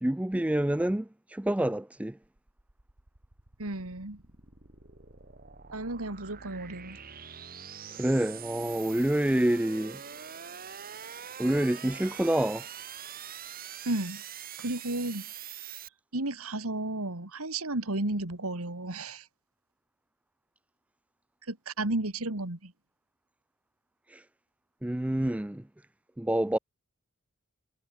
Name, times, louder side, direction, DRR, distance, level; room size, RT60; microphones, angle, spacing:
voice 1, 0.0-2.2 7.9-10.0 11.4-12.7 24.1-24.2 24.8-25.6 26.2-26.6, right 1 dB, 5° right, 0.4 m, -27 dB
sound 1, 2.2-15.9, right 8 dB, 45° right, 2.2 m, -44 dB
voice 2, 3.6-4.2 5.7-7.0 13.8-14.2 14.6-15.3 16.1-19.3 21.5-22.7, right 2 dB, 85° right, 2.9 m, -33 dB
head